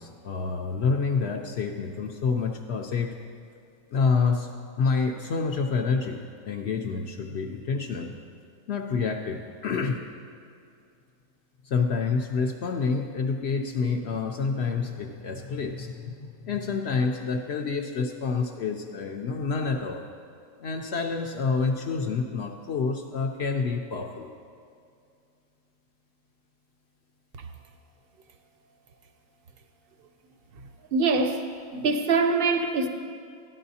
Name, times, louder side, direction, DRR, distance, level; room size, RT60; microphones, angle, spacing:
voice 1, 0.0-3.2 3.9-4.5 4.8-6.2 6.4-8.1 8.7-10.0 11.6-20.0 20.6-24.3, left 5 dB, 65° left, 3 dB, 0.7 m, -28 dB
voice 2, 30.9-31.4 31.7-32.9, right 4 dB, 55° right, 6 dB, 0.7 m, -23 dB
13.0 x 10.0 x 2.7 m, 2.4 s
omnidirectional pair, 1.5 m